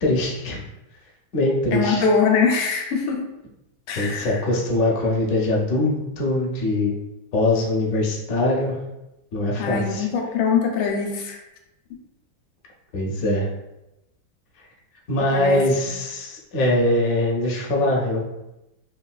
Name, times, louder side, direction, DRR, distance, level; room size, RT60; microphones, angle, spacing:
voice 1, 0.0-0.6 1.3-2.0 4.0-7.0 7.3-8.8 9.3-10.1 12.9-13.5 15.1-18.2, left 1 dB, 65° left, -2 dB, 0.8 m, -22 dB
voice 2, 1.7-3.3 3.9-4.4 9.6-11.4 15.3-16.0, left 5 dB, 90° left, 1 dB, 1.4 m, -23 dB
3.6 x 2.3 x 2.2 m, 0.93 s
omnidirectional pair, 2.1 m